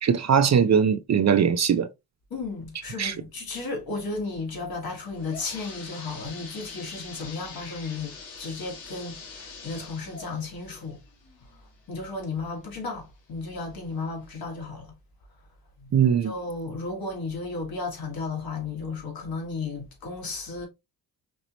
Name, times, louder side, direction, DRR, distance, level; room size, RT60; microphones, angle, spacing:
voice 1, 0.0-1.9 3.0-3.1 15.9-16.3, right 7 dB, 40° right, 0.6 m, -20 dB
voice 2, 2.3-11.0 11.9-14.9 15.8-15.9 16.2-20.7, left 3 dB, 55° left, 2.2 m, -34 dB
sound 1, 4.9-12.5 13.0-13.1 13.8-13.9 14.3-14.4, left 4 dB, 85° left, 1.5 m, -44 dB
5.2 x 2.9 x 2.9 m
supercardioid pair, 70°, 43 cm